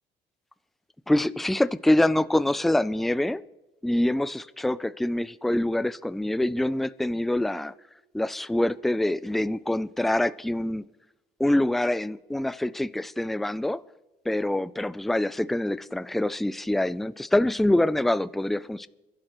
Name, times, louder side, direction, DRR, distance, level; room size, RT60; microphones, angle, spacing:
voice 1, 1.1-3.4 3.8-7.7 8.1-10.8 11.4-13.8 14.3-18.9, left 1 dB, ahead, 0.4 m, -25 dB
28.5 x 11.5 x 3.0 m
cardioid pair, 110°, 17 cm